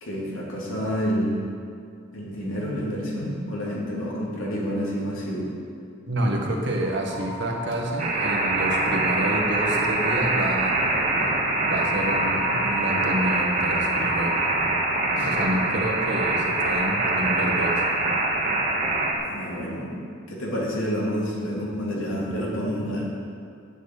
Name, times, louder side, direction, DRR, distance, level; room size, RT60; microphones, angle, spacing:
voice 1, 0.0-1.4 2.1-5.4 15.2-15.6 19.3-19.9 20.3-23.1, equal, 85° left, -4 dB, 2.9 m, -29 dB
voice 2, 6.1-10.7 11.6-14.4 15.2-17.8, right 1 dB, 60° right, 0 dB, 1.6 m, -28 dB
sound 1, 6.8-14.9, equal, 15° right, 3.2 m, -36 dB
sound 2, 8.0-19.1, right 2 dB, 40° right, 1.6 m, -24 dB
8.8 x 7.3 x 8.5 m, 2.3 s
head